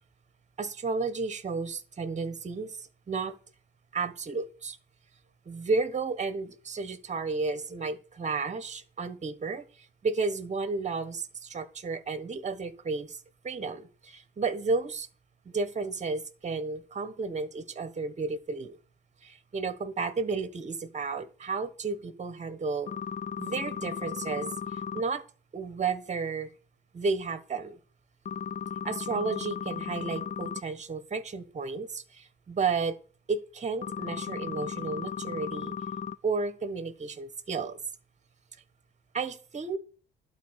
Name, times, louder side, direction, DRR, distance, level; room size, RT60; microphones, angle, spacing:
voice 1, 0.6-3.4 3.9-4.8 5.4-15.1 15.4-18.8 19.2-22.9 23.4-25.2 25.5-26.5 26.9-27.8 28.8-33.0 33.3-35.7 36.2-37.8 39.1-39.8, right 4 dB, 35° right, 14 dB, 1.4 m, -32 dB
sound 1, 22.9-25.0 28.3-30.6 33.8-36.2, left 7 dB, 35° left, 0.5 m, -35 dB
11.5 x 4.5 x 8.2 m, 0.39 s
cardioid pair, 90°, 20 cm